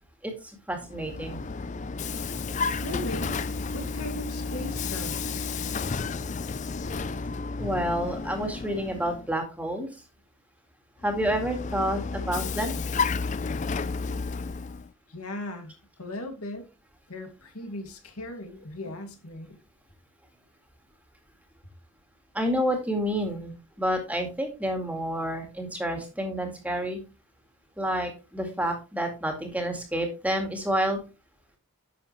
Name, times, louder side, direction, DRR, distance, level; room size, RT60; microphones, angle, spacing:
voice 1, 0.7-1.4 7.6-9.9 11.0-12.7 22.3-27.0 27.8-31.0, equal, 5° right, 1.9 m, -29 dB
Vehicle, 0.8-9.3 11.0-14.9, left 4 dB, 35° left, 0.4 m, -32 dB
voice 2, 2.8-3.4 3.7-5.2 15.1-16.6 17.1-19.6, left 1 dB, 85° left, 2.4 m, -38 dB
11.0 x 7.0 x 3.2 m
head